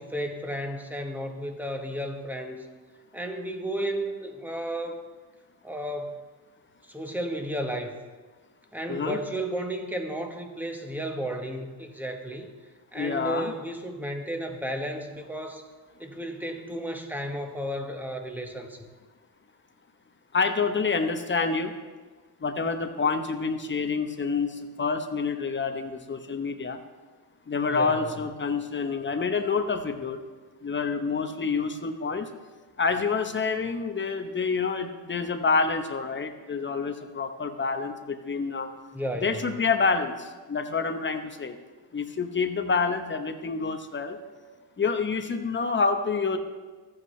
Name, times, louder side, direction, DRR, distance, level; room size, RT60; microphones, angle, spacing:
voice 1, 0.0-2.7 3.1-5.0 5.6-6.2 6.8-8.0 8.7-12.5 12.9-15.6 16.0-18.9 27.7-28.2 38.9-39.4, right 1 dB, 5° right, 4 dB, 1.0 m, -33 dB
voice 2, 12.9-13.5 20.3-21.7 22.4-26.8 27.5-30.2 30.6-32.3 32.8-38.7 39.2-41.6 41.9-44.2 44.8-46.4, left 4 dB, 25° left, 7 dB, 0.8 m, -27 dB
14.5 x 8.3 x 3.2 m, 1.3 s
cardioid pair, 100°, 44 cm